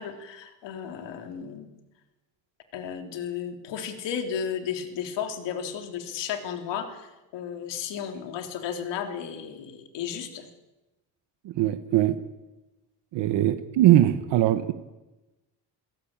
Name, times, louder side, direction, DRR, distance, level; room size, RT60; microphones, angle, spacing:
voice 1, 0.0-1.7 2.7-10.5, left 8 dB, 80° left, 6 dB, 3.5 m, -34 dB
voice 2, 11.4-12.2 13.1-14.7, right 13 dB, 80° right, 10 dB, 1.5 m, -21 dB
27.5 x 17.0 x 9.0 m, 1.1 s
cardioid pair, 155°, 42 cm